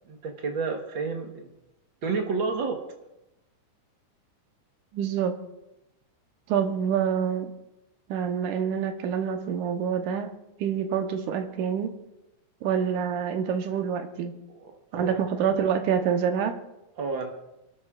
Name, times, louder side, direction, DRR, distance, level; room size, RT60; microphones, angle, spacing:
voice 1, 0.1-1.5 2.0-2.8 14.6-15.2 17.0-17.3, right 4 dB, 55° right, 3 dB, 1.5 m, -30 dB
voice 2, 4.9-5.4 6.5-7.5 8.1-10.3 10.6-11.9 12.6-14.3 14.9-16.6, right 7 dB, 75° right, 6 dB, 2.4 m, -26 dB
28.5 x 12.5 x 2.4 m, 0.92 s
omnidirectional pair, 3.7 m